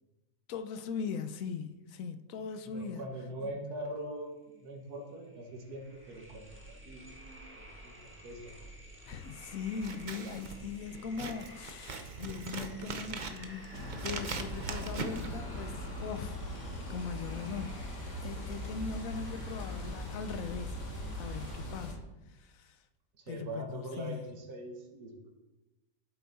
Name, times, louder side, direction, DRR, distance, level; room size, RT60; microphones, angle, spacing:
voice 1, 0.5-3.0 9.1-16.4 16.9-17.9 18.2-20.8 21.1-22.0 22.3-22.8 23.3-24.2, left 6 dB, 60° left, 1.0 m, -40 dB
voice 2, 2.6-8.5 23.1-25.3, right 1 dB, 70° right, 2.0 m, -42 dB
sound 1, 4.6-4.7 4.9-21.6, right 1 dB, 10° right, 1.3 m, -51 dB
Scissors, 9.7-16.0, right 4 dB, 45° right, 0.6 m, -41 dB
sound 2, 13.7-21.9, left 1 dB, 85° left, 2.4 m, -40 dB
10.5 x 8.1 x 4.1 m
omnidirectional pair, 1.8 m